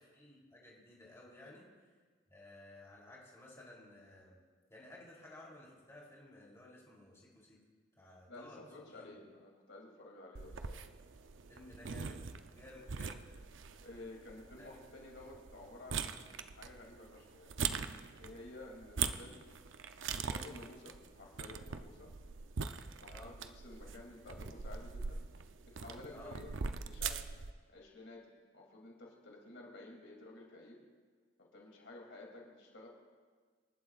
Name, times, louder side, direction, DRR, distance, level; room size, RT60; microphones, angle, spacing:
voice 1, 0.0-1.6 2.3-4.4 4.7-7.6 8.0-9.1 11.5-13.3 14.6-14.8 23.1-23.3 26.1-26.3, left 1 dB, 15° left, -5 dB, 3.2 m, -55 dB
voice 2, 8.3-10.8 13.8-17.5 18.2-19.4 20.2-22.1 23.0-25.2 25.7-26.5 26.8-27.2 27.7-28.3 28.5-30.8 31.4-32.9, left 2 dB, 75° left, -1 dB, 2.8 m, -52 dB
sound 1, 10.3-27.5, right 6 dB, 80° right, 0.6 m, -42 dB
27.5 x 11.5 x 2.4 m, 1.5 s
head